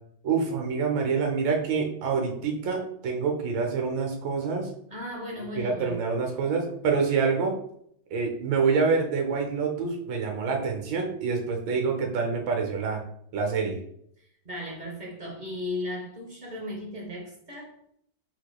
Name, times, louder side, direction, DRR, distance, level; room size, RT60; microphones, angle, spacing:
voice 1, 0.2-4.7 5.6-7.6 8.1-13.0 13.3-13.8, right 5 dB, 85° right, 2 dB, 1.5 m, -26 dB
voice 2, 4.9-6.4 14.2-17.8, left 1 dB, 35° right, -2 dB, 0.7 m, -36 dB
4.7 x 4.3 x 2.3 m, 0.69 s
omnidirectional pair, 2.0 m